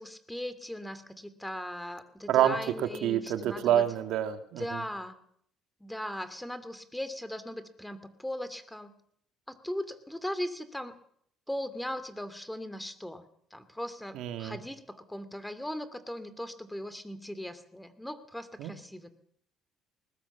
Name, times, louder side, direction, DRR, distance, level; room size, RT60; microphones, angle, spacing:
voice 1, 0.0-3.8 4.6-5.2 5.8-8.9 9.5-10.9 11.5-13.2 13.5-19.1, left 1 dB, 5° left, 12 dB, 2.5 m, -38 dB
voice 2, 3.0-4.8 14.1-14.6 18.6-18.7, right 11 dB, 75° right, 7 dB, 2.5 m, -27 dB
20.5 x 20.0 x 7.3 m, 0.67 s
cardioid pair, 95°, 0 cm